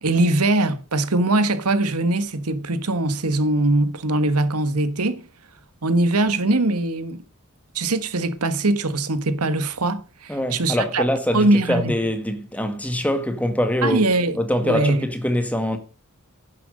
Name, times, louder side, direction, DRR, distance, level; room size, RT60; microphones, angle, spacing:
voice 1, 0.0-5.3 5.8-7.2 7.7-11.0 11.3-11.9 13.8-14.4 14.6-15.0, right 2 dB, 90° right, 1.5 m, -21 dB
voice 2, 10.3-14.0 14.4-15.8, equal, 5° left, 1.7 m, -23 dB
10.5 x 10.5 x 6.5 m
head